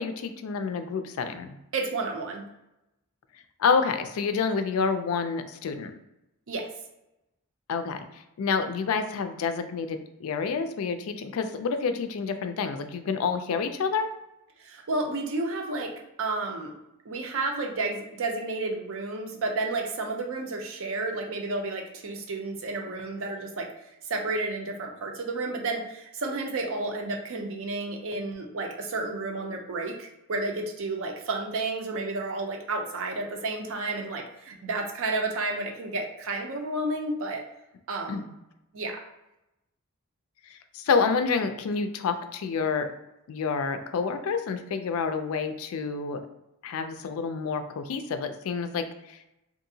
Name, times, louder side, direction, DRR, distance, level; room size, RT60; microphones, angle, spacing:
voice 1, 0.0-1.6 3.6-6.0 7.7-14.1 38.1-38.3 40.5-42.9 43.3-46.2 46.6-49.2, left 5 dB, 70° left, 8 dB, 0.3 m, -28 dB
voice 2, 1.7-2.4 6.5-6.7 14.6-15.9 16.2-16.7 17.1-37.4 37.9-38.2 38.7-39.0, right 2 dB, 65° right, 2 dB, 0.5 m, -31 dB
2.7 x 2.5 x 2.7 m, 0.90 s
head